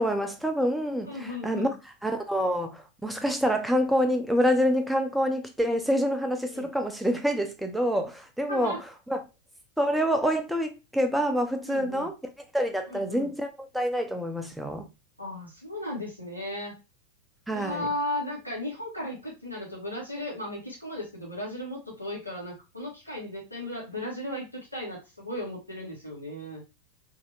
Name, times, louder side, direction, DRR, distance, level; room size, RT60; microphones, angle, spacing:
voice 1, 0.0-1.7 2.0-8.8 9.1-9.2 9.8-12.1 12.5-14.9 17.5-17.9, equal, ahead, 0.6 m, -27 dB
voice 2, 1.1-1.7 6.5-6.7 8.5-8.8 11.6-12.1 12.9-13.3 15.2-16.8 17.5-26.6, left 1 dB, 85° left, 1.3 m, -36 dB
3.2 x 2.8 x 2.7 m
figure-of-eight pair, 90°, 0 cm